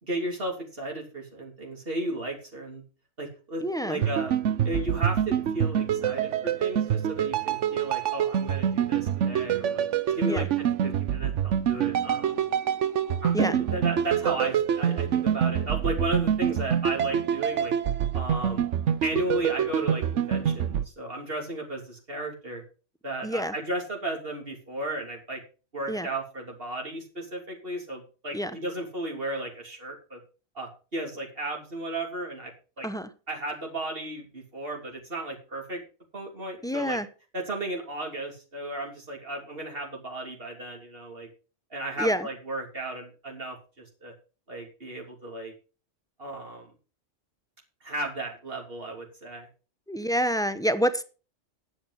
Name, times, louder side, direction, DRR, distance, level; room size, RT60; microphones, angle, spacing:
voice 1, 0.0-2.8 3.2-4.3 4.6-12.4 13.2-17.7 18.1-18.6 19.0-22.6 23.0-25.4 25.7-30.2 30.6-32.5 32.8-32.9 33.3-35.8 36.1-37.0 37.3-41.3 41.7-44.1 44.5-45.5 46.2-46.7 47.8-49.5, right 1 dB, 55° right, -1 dB, 3.3 m, -34 dB
voice 2, 3.6-4.0 10.3-10.5 13.3-13.6 23.2-23.5 25.9-26.1 28.3-28.6 32.8-33.1 36.6-37.1 42.0-42.3 49.9-51.0, equal, 5° left, 13 dB, 0.7 m, -27 dB
sound 1, 4.0-20.9, right 9 dB, 85° right, 1.1 m, -26 dB
11.5 x 8.5 x 5.6 m, 0.35 s
omnidirectional pair, 1.2 m